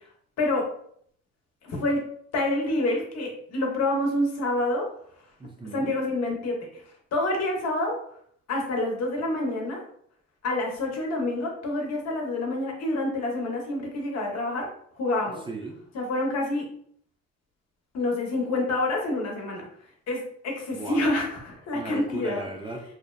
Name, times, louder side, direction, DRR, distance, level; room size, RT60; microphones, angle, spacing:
voice 1, 0.4-0.7 1.6-2.0 2.3-4.9 5.7-6.7 7.1-8.0 8.5-9.8 10.4-14.7 14.9-15.4 15.9-16.7 17.9-19.7 20.1-22.4, left 2 dB, 60° left, 0 dB, 0.8 m, -27 dB
voice 2, 5.4-5.9 15.5-15.8 20.7-21.0 21.7-22.8, right 2 dB, 15° right, 1 dB, 0.4 m, -36 dB
2.6 x 2.0 x 2.3 m, 0.64 s
cardioid pair, 85°, 29 cm